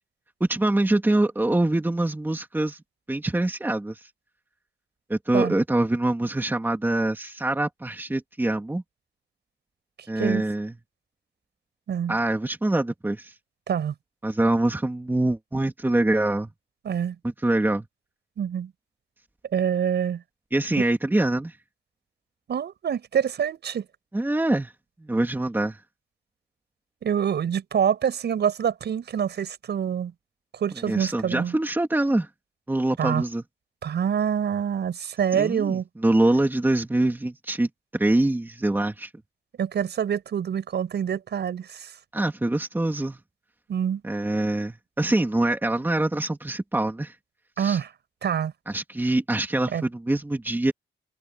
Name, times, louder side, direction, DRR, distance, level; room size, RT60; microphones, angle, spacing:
voice 1, 0.4-2.8 3.1-4.0 5.1-8.8 10.1-10.8 12.1-13.3 14.2-16.5 17.2-17.9 20.5-21.6 24.1-24.7 25.0-25.8 30.9-32.3 32.7-33.4 35.3-39.1 42.1-43.2 44.0-47.1 47.6-47.8 48.7-50.7, right 1 dB, 10° right, 2.7 m, -24 dB
voice 2, 16.8-17.2 18.4-18.7 19.5-20.2 22.5-23.8 27.0-30.1 30.6-31.5 33.0-33.2 33.8-35.9 39.6-41.9 43.7-44.0 47.6-47.9 48.2-48.5 49.7-49.8, right 8 dB, 65° right, 7.5 m, -26 dB
wide cardioid pair, 135°, 19 cm